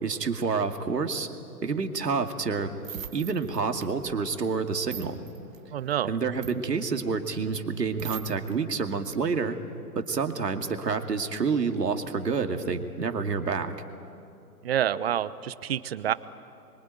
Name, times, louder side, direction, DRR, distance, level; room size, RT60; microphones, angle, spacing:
voice 1, 0.0-1.3 1.6-2.8 3.1-5.2 6.0-9.6 9.9-13.7, right 5 dB, 80° right, 6 dB, 2.5 m, -28 dB
sound 1, 1.9-8.5 9.0-9.3, right 9 dB, 55° right, 1.5 m, -43 dB
voice 2, 5.7-6.1 14.6-16.1, right 10 dB, 40° right, 17 dB, 0.8 m, -27 dB
27.0 x 24.0 x 9.2 m, 2.7 s
hypercardioid pair, 145°, 48 cm